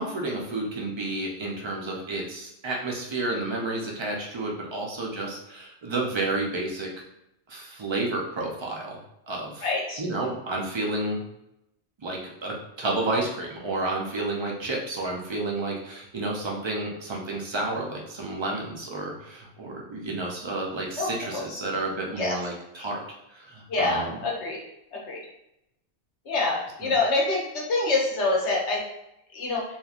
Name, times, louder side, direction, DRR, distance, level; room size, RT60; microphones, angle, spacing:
voice 1, 0.0-6.9 7.5-9.0 9.3-9.7 10.0-11.2 12.0-23.0 23.3-24.2 26.8-26.9, right 2 dB, 45° right, -1 dB, 0.3 m, -31 dB
voice 2, 9.6-10.0 21.0-21.6 22.2-22.3 23.7-24.6 24.9-25.2 26.3-28.8 29.3-29.6, left 3 dB, 75° left, -2 dB, 1.1 m, -26 dB
3.0 x 2.5 x 2.4 m, 0.84 s
omnidirectional pair, 1.2 m